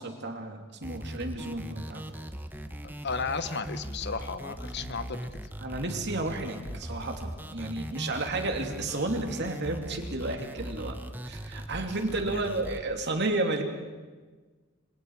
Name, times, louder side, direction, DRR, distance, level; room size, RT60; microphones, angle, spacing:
voice 1, 0.0-2.0 5.6-11.0 11.2-13.6, right 2 dB, 55° right, 4 dB, 2.7 m, -32 dB
sound 1, 0.8-12.8, right 1 dB, 10° right, 1.0 m, -40 dB
voice 2, 2.8-5.3 12.3-12.5, left 4 dB, 55° left, 11 dB, 1.1 m, -34 dB
26.5 x 26.0 x 4.7 m, 1.3 s
head